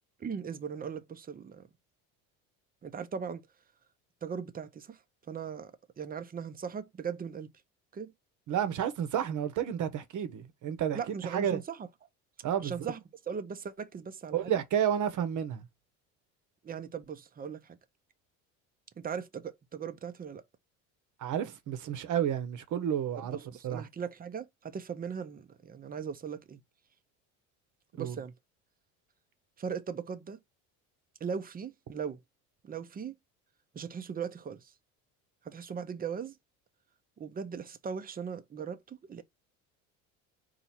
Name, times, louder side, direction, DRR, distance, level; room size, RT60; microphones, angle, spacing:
voice 1, 0.2-1.7 2.8-3.4 4.2-5.0 5.3-5.7 6.0-7.5 7.9-8.1 10.9-11.8 12.6-13.0 13.3-14.5 16.6-17.8 19.0-20.4 23.2-26.6 28.0-28.3 29.6-30.4 31.2-32.2 32.6-33.1 33.7-34.7 35.4-36.3 37.2-39.2, right 6 dB, 25° right, 0.7 m, -39 dB
voice 2, 8.5-11.6 12.4-12.7 14.3-15.6 21.2-23.4 23.6-23.8 28.0-28.2, right 9 dB, 50° right, 1.0 m, -31 dB
4.4 x 2.8 x 4.2 m
supercardioid pair, 90°, 37 cm